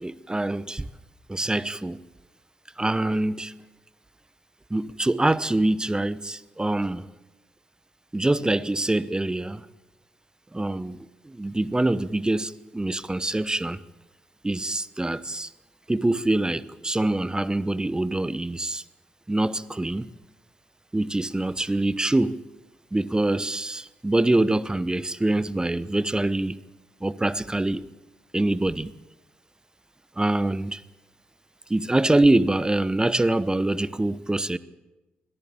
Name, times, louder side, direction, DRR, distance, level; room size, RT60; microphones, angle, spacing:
voice 1, 0.0-0.9 1.3-2.0 2.8-3.5 4.7-7.0 8.1-9.6 10.5-11.0 11.3-13.8 14.4-15.5 15.9-18.8 19.3-20.1 20.9-22.4 22.9-26.6 27.0-27.8 28.3-28.9 30.2-30.8 31.7-34.6, right 2 dB, 15° right, 1.0 m, -24 dB
22.5 x 13.5 x 8.7 m
hypercardioid pair, 40°, 5 cm